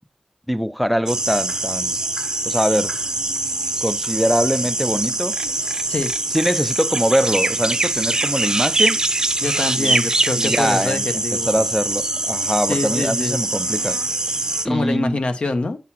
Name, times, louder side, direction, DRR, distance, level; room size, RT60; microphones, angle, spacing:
voice 1, 0.5-1.9 2.5-2.9 3.8-5.4 6.3-9.0 9.8-10.0 10.4-14.0 14.6-15.2, equal, ahead, 0.5 m, -22 dB
sound 1, 1.1-14.7, right 2 dB, 30° right, 0.7 m, -23 dB
voice 2, 9.4-11.7 12.7-13.4 14.6-15.8, left 2 dB, 60° left, 1.1 m, -25 dB
8.4 x 4.1 x 4.3 m
wide cardioid pair, 85°, 2 cm